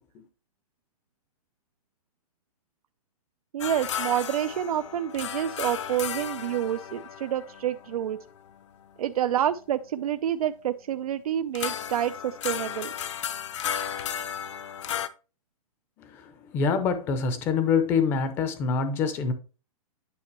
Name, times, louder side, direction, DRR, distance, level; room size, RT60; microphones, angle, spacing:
voice 1, 3.5-8.2 9.0-12.9, right 10 dB, 75° right, 0.5 m, -28 dB
sound 1, 3.6-9.0 11.5-15.1, left 9 dB, 50° left, 0.7 m, -34 dB
voice 2, 16.0-19.3, left 5 dB, 10° left, 0.6 m, -25 dB
9.8 x 5.3 x 3.1 m
hypercardioid pair, 180°, 19 cm